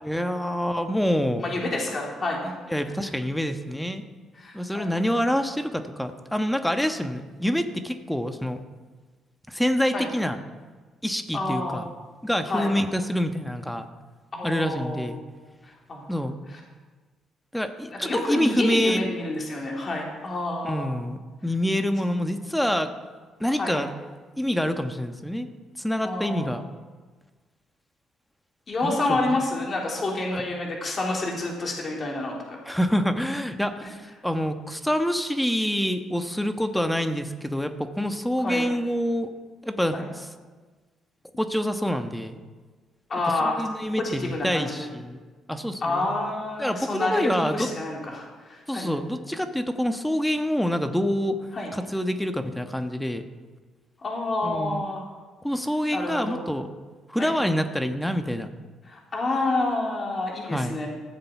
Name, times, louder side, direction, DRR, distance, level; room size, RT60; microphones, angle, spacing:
voice 1, 0.0-1.5 2.7-4.0 4.5-8.6 9.5-10.4 11.0-11.9 12.2-13.9 14.4-15.2 16.1-16.4 17.5-19.1 20.6-22.9 23.4-23.9 24.4-25.5 25.8-26.6 28.8-29.4 30.3-30.4 32.7-39.3 39.6-40.3 41.4-42.4 43.6-45.2 45.5-46.1 46.6-47.7 48.7-51.4 51.7-53.2 54.4-54.9 55.4-56.7 57.1-58.5 60.5-60.8, equal, 5° left, 7 dB, 1.3 m, -26 dB
voice 2, 1.4-2.5 2.9-3.0 4.3-5.0 9.9-10.1 11.3-11.8 12.5-12.7 14.3-15.1 15.6-16.2 16.5-16.6 17.8-20.9 23.6-23.8 26.0-26.5 28.7-32.6 33.8-33.9 38.4-38.7 39.9-40.1 43.1-43.6 44.0-44.9 45.8-48.9 51.5-51.7 54.0-55.1 55.9-56.5 57.2-57.3 58.8-60.9, left 2 dB, 45° left, -1 dB, 3.2 m, -29 dB
15.5 x 7.6 x 5.9 m, 1.4 s
hypercardioid pair, 50°, 0 cm